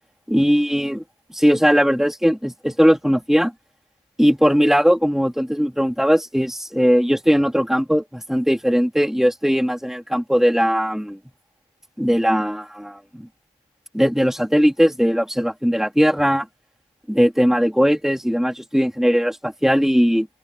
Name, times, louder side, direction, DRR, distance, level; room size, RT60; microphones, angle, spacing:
voice 1, 0.3-1.0 1.3-3.5 4.2-11.2 12.0-13.3 13.9-16.5 17.1-20.3, equal, ahead, 2.9 m, -19 dB
head